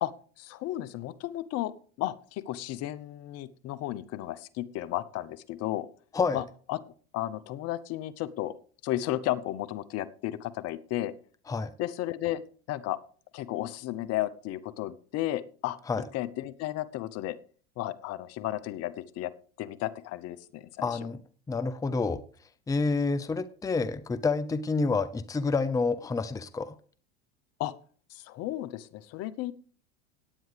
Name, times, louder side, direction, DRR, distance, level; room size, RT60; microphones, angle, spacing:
voice 1, 0.0-1.7 2.0-5.9 6.3-6.8 7.1-8.6 8.8-11.1 11.8-12.4 12.7-13.0 13.3-15.8 16.1-17.4 17.8-19.3 19.6-21.0 27.6-27.7 28.1-29.5, left 14 dB, 50° left, 16 dB, 0.9 m, -33 dB
voice 2, 20.8-21.2 21.5-22.2 22.7-26.7, left 4 dB, 10° left, 14 dB, 0.6 m, -28 dB
17.5 x 9.3 x 3.4 m, 0.42 s
hypercardioid pair, 95°, 31 cm